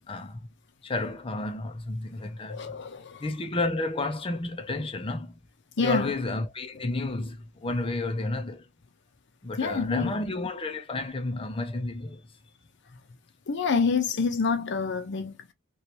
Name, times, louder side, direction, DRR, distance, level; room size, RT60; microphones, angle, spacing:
voice 1, 0.1-0.5 0.8-2.8 3.2-5.3 5.8-8.7 9.4-12.2, left 2 dB, 25° left, 0.6 m, -31 dB
voice 2, 2.5-3.3 5.8-6.1 9.6-10.1 13.5-15.5, left 5 dB, 60° left, 0.7 m, -27 dB
3.1 x 3.0 x 2.8 m
head